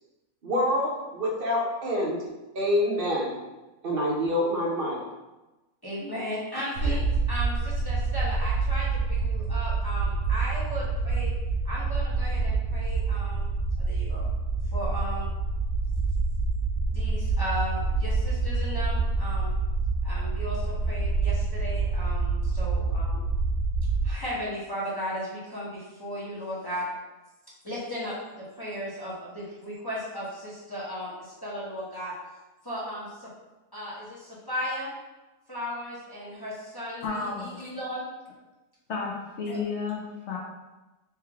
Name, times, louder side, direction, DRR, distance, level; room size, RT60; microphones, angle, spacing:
voice 1, 0.4-2.2 2.5-3.4 3.8-5.0, left 1 dB, 45° right, -3 dB, 0.8 m, -26 dB
voice 2, 5.8-11.3 11.6-13.5 13.8-14.3 14.7-15.3 16.9-19.5 20.0-23.2 24.0-26.9 27.6-32.1 32.6-33.3 33.7-34.9 35.5-37.1 37.4-38.0, equal, 20° left, -8 dB, 0.7 m, -35 dB
sound 1, 6.8-24.1, right 3 dB, 75° right, 1.2 m, -27 dB
voice 3, 37.0-37.7 38.9-40.4, left 4 dB, 60° left, -2 dB, 0.8 m, -32 dB
3.3 x 3.2 x 3.4 m, 1.1 s
omnidirectional pair, 1.6 m